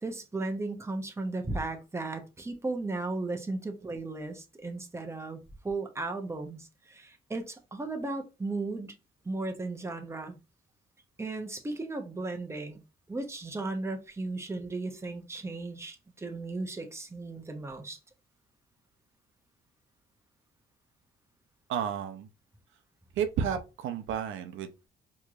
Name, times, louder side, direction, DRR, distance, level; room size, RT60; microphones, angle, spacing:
voice 1, 0.0-9.0 9.2-10.4 11.2-12.8 13.1-18.0, right 2 dB, 15° right, 0.8 m, -35 dB
voice 2, 21.7-22.3 23.2-24.9, right 8 dB, 80° right, 0.6 m, -32 dB
4.4 x 3.0 x 2.4 m
cardioid pair, 90°, 20 cm